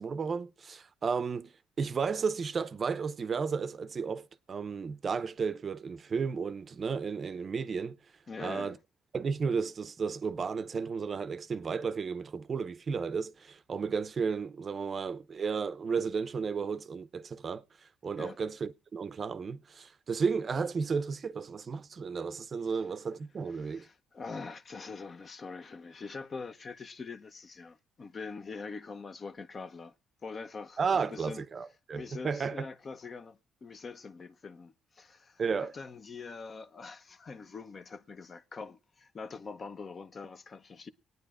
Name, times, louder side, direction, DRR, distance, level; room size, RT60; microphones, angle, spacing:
voice 1, 0.0-8.0 8.4-8.8 9.1-17.6 18.0-23.9 30.8-32.7 35.4-35.7, right 5 dB, 45° right, 0.5 m, -33 dB
voice 2, 8.3-8.8 18.2-18.4 22.7-22.8 23.5-29.9 30.2-31.4 31.9-40.9, left 4 dB, 40° left, 0.7 m, -44 dB
24.0 x 9.3 x 2.4 m
cardioid pair, 90°, 0 cm